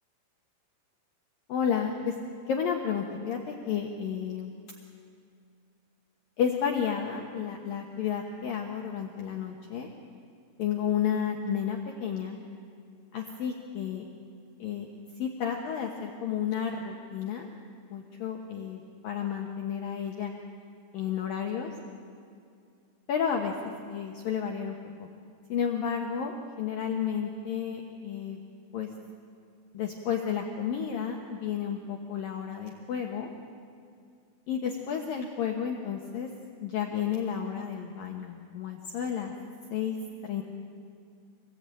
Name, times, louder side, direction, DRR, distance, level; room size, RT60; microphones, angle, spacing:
voice 1, 1.5-2.2 2.5-4.5 6.4-9.9 10.6-12.4 13.1-14.1 14.6-14.9 15.2-17.5 17.9-20.3 20.9-21.7 23.1-23.5 23.9-24.8 25.5-28.4 28.7-28.9 29.7-33.3 34.5-36.3 36.6-39.3 39.7-40.0 40.2-40.4, left 8 dB, 75° left, 2 dB, 2.1 m, -31 dB
26.0 x 19.5 x 9.0 m, 2.3 s
omnidirectional pair, 6.0 m